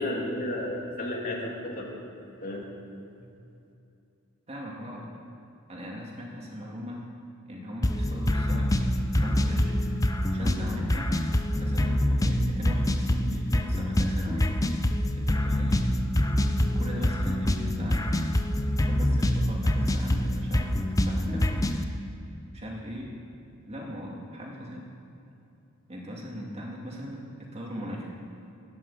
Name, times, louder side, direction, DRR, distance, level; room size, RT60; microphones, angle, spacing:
voice 1, 0.0-1.9 2.4-2.7, left 1 dB, 40° left, -1 dB, 2.4 m, -32 dB
voice 2, 4.5-5.1 5.7-7.1 7.5-9.8 10.3-11.1 11.5-14.6 15.2-15.9 16.5-18.2 18.8-21.9 22.5-23.1 23.7-24.9 25.9-28.1, equal, 30° right, -2 dB, 2.4 m, -39 dB
sound 1, 7.8-21.8, left 1 dB, 15° left, 0.6 m, -25 dB
12.5 x 10.0 x 8.5 m, 2.7 s
head